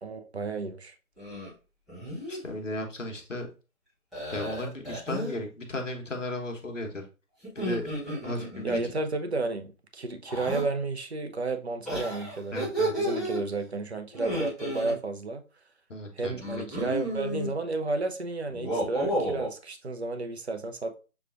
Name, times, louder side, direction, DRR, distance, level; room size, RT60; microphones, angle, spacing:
voice 1, 0.0-0.9 8.6-12.6 13.0-15.4 16.2-20.9, right 3 dB, 50° right, 0.6 m, -32 dB
sound 1, 1.2-1.5 1.9-2.4 4.1-5.4 7.4-8.8 10.3-10.7 11.9-13.4 14.1-14.9 16.4-17.5 18.5-19.5, right 1 dB, ahead, 0.6 m, -32 dB
voice 2, 2.3-3.5 4.3-7.1 7.5-7.9 8.2-8.8 12.5-12.9 15.9-16.9, left 1 dB, 60° left, 1.1 m, -35 dB
6.8 x 2.4 x 2.5 m
figure-of-eight pair, 165°, 43 cm